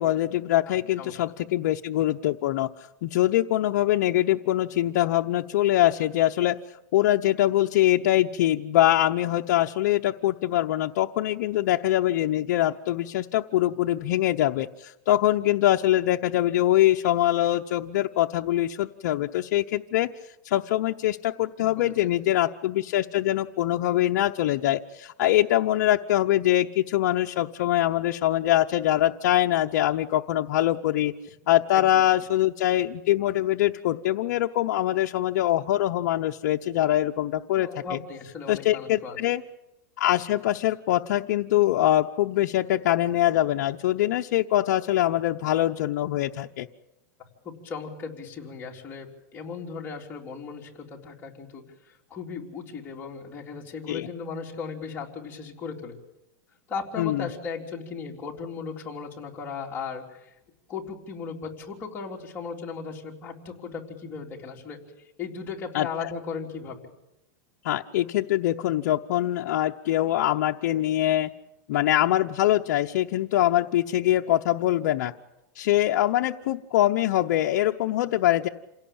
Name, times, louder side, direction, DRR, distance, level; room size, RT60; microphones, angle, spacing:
voice 1, 0.0-2.7 3.0-6.6 6.9-20.1 20.4-31.1 31.5-38.0 38.5-39.4 40.0-46.7 53.9-54.1 57.0-57.3 65.7-66.1 67.6-71.3 71.7-75.1 75.6-78.5, left 14 dB, 60° left, 2 dB, 0.9 m, -23 dB
voice 2, 31.7-32.0 37.5-39.2 47.4-51.6 52.1-55.9 56.7-60.3 60.7-64.8 65.2-66.9, left 5 dB, 20° left, -2 dB, 3.7 m, -36 dB
28.0 x 17.5 x 8.8 m, 0.91 s
supercardioid pair, 155°, 10 cm